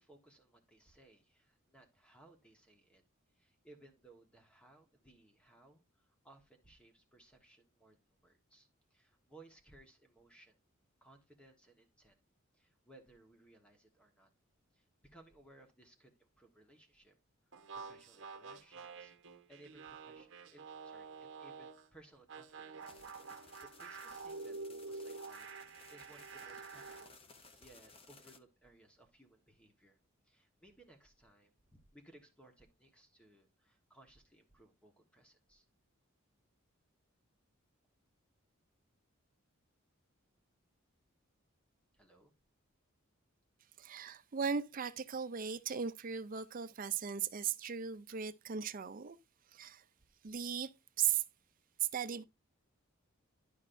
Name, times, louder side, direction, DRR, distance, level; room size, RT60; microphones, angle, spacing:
voice 1, 0.0-3.0 3.3-10.6 11.0-12.2 12.5-14.3 14.7-17.1 17.4-23.0 23.3-30.0 30.2-35.7 41.9-42.3, right 2 dB, 5° left, 1.4 m, -63 dB
sound 1, 17.5-21.9 22.3-27.1, right 4 dB, 60° right, 1.1 m, -48 dB
sound 2, 22.8-28.4, left 4 dB, 25° left, 0.7 m, -60 dB
voice 2, 43.8-49.2 49.5-49.8 50.2-50.7 51.0-51.2 51.8-52.2, right 8 dB, 40° right, 0.5 m, -37 dB
12.0 x 5.3 x 2.6 m
head